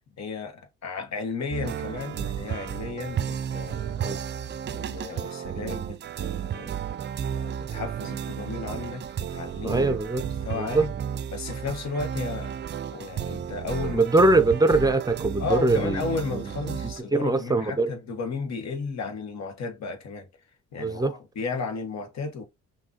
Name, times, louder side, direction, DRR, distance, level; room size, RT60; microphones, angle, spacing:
voice 1, 0.2-4.2 4.7-6.7 7.3-9.9 10.4-10.9 11.3-12.5 12.9-14.1 15.4-20.3 20.7-22.4, left 4 dB, 60° left, 1.7 m, -34 dB
sound 1, 1.5-17.0, right 9 dB, 35° right, 0.4 m, -33 dB
voice 2, 9.6-10.2 10.5-10.8 13.9-16.0 17.1-17.9 20.8-21.1, right 2 dB, 10° right, 0.7 m, -22 dB
5.9 x 2.8 x 2.9 m
cardioid pair, 90°, 30 cm